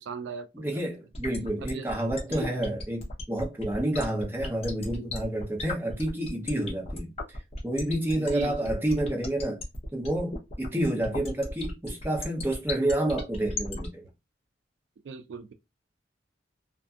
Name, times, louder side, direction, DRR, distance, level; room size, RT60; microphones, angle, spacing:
voice 1, 0.0-0.8 1.6-1.9 2.3-2.6 8.2-8.8 15.0-15.5, right 5 dB, 70° right, 0.3 m, -38 dB
voice 2, 0.5-9.6 9.9-14.1, right 1 dB, 10° right, 0.7 m, -29 dB
sound 1, 1.1-13.9, left 2 dB, 30° left, 0.7 m, -36 dB
2.6 x 2.5 x 2.3 m
head